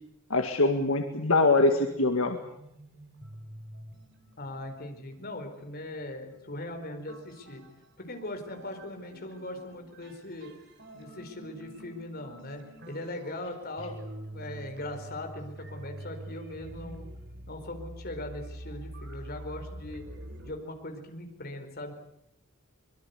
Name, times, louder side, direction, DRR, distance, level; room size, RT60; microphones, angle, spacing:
voice 1, 0.3-2.4, left 2 dB, 70° left, 5 dB, 2.0 m, -23 dB
sound 1, 1.6-8.2 8.5-20.5, right 1 dB, 55° right, 3.8 m, -46 dB
voice 2, 4.4-7.6 8.0-10.5 10.9-14.0 14.3-17.1 17.5-20.0 20.4-22.0, left 1 dB, 45° left, 5 dB, 4.6 m, -40 dB
25.0 x 22.5 x 8.3 m, 0.78 s
head